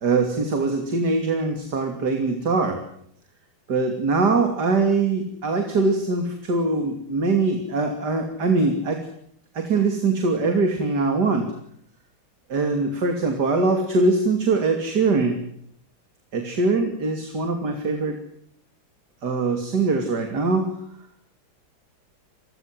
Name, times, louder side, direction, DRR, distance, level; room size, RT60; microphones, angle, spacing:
voice 1, 0.0-2.8 3.7-9.0 9.5-11.5 12.5-15.4 16.3-18.2 19.2-20.7, right 3 dB, 50° right, 5 dB, 3.3 m, -22 dB
27.5 x 21.5 x 7.8 m, 0.66 s
omnidirectional pair, 2.3 m